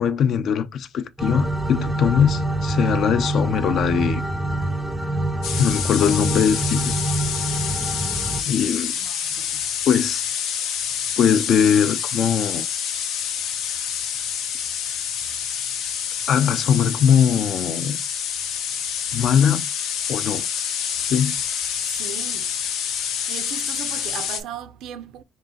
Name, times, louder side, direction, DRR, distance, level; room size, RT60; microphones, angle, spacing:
voice 1, 0.0-4.3 5.6-6.9 8.5-8.9 9.9-10.2 11.2-12.7 16.3-18.0 19.1-19.7 20.1-20.5 21.0-21.3, left 8 dB, 55° left, 0.5 m, -20 dB
sound 1, 1.2-8.4, right 2 dB, ahead, 0.4 m, -25 dB
sound 2, 5.4-24.4, left 8 dB, 85° left, 0.8 m, -27 dB
voice 2, 9.0-9.6 21.8-22.5 23.3-25.2, right 9 dB, 80° right, 0.4 m, -37 dB
3.8 x 2.4 x 3.8 m
cardioid pair, 145°, 0 cm